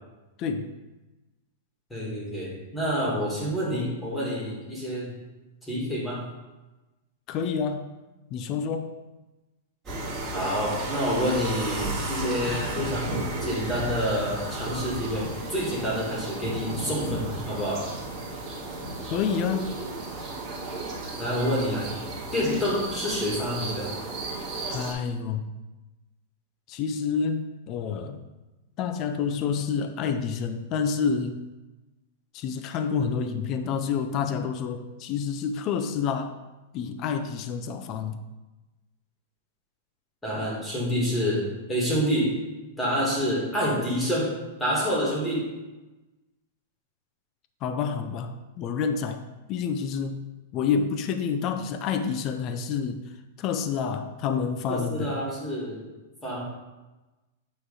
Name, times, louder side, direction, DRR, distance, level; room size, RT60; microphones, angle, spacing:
voice 1, 0.4-0.7 7.3-7.9 8.3-9.0 19.0-19.8 24.6-25.5 26.7-28.3 28.8-31.5 32.3-36.3 36.7-38.2 47.6-49.2 49.5-50.2 50.5-53.0 53.4-55.2, left 6 dB, 25° left, 7 dB, 0.4 m, -28 dB
voice 2, 1.9-5.1 5.7-6.2 10.3-17.9 21.2-21.9 22.3-23.9 40.2-42.4 42.8-45.5 54.7-55.9 56.2-56.4, equal, 5° left, -5 dB, 1.6 m, -28 dB
sound 1, 9.8-24.9, right 2 dB, 20° right, 1.8 m, -33 dB
8.8 x 3.2 x 4.9 m, 1.1 s
supercardioid pair, 170°, 0 cm